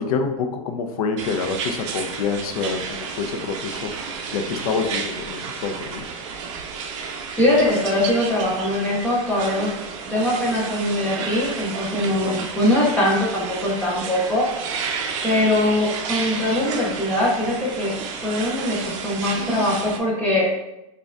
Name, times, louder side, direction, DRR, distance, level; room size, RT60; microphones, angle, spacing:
voice 1, 0.0-6.0 12.2-12.4, left 5 dB, 75° left, 6 dB, 0.5 m, -27 dB
sound 1, 1.2-20.0, right 5 dB, 55° right, 0.5 m, -31 dB
voice 2, 7.4-9.7 10.0-14.5 15.2-17.9 18.2-20.5, left 1 dB, 10° left, -6 dB, 0.5 m, -22 dB
5.1 x 2.3 x 2.4 m, 0.92 s
supercardioid pair, 155°, 19 cm